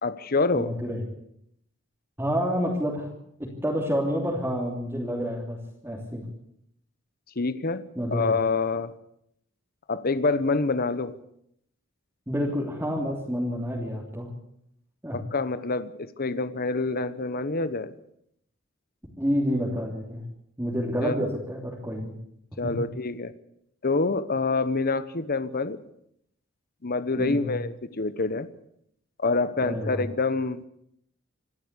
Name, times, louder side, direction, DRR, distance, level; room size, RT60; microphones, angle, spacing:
voice 1, 0.0-0.7 7.4-7.8 8.1-8.9 9.9-11.1 15.1-17.9 21.0-21.1 22.6-23.3 23.8-25.8 26.8-28.5 29.2-30.6, left 3 dB, 50° left, 13 dB, 1.0 m, -26 dB
voice 2, 0.5-1.0 2.2-3.1 3.4-6.2 7.9-8.3 12.3-14.3 15.0-15.2 19.2-20.2 20.6-22.1 22.6-22.7 27.1-27.6 29.6-30.0, equal, 10° right, -3 dB, 3.1 m, -29 dB
27.0 x 11.5 x 8.3 m, 0.74 s
head